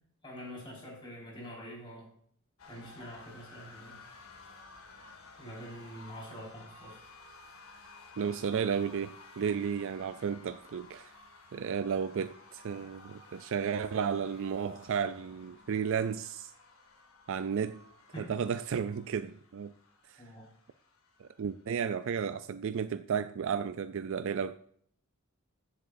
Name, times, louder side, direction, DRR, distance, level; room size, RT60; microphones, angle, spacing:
voice 1, 0.2-2.1 2.7-4.0 5.4-7.0 18.1-18.3 20.2-20.5, equal, 20° left, 4.9 m, -46 dB
sound 1, 2.6-21.7, left 3 dB, 70° left, 2.0 m, -55 dB
voice 2, 8.2-11.1 11.5-16.5 17.3-17.8 18.2-19.7 20.1-20.2 21.2-24.6, right 7 dB, 60° right, 0.4 m, -33 dB
15.0 x 7.8 x 2.6 m
head